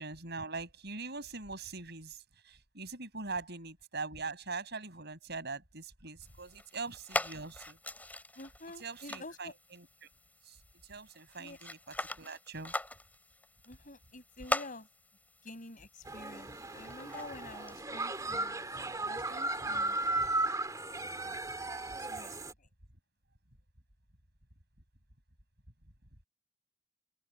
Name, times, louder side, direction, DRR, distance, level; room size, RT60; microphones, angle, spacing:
voice 1, 0.0-7.8 8.8-10.1 10.4-10.6 10.8-12.7, right 4 dB, 55° right, 7.9 m, -42 dB
sound 1, 6.2-17.8, left 1 dB, 10° left, 4.2 m, -42 dB
voice 2, 8.4-9.5 11.4-11.6 13.7-14.9 15.4-18.6 19.1-20.3 21.2-21.4 22.0-22.7, left 2 dB, 40° left, 6.6 m, -49 dB
sound 2, 16.1-22.5, right 2 dB, 20° right, 2.4 m, -36 dB
open air
head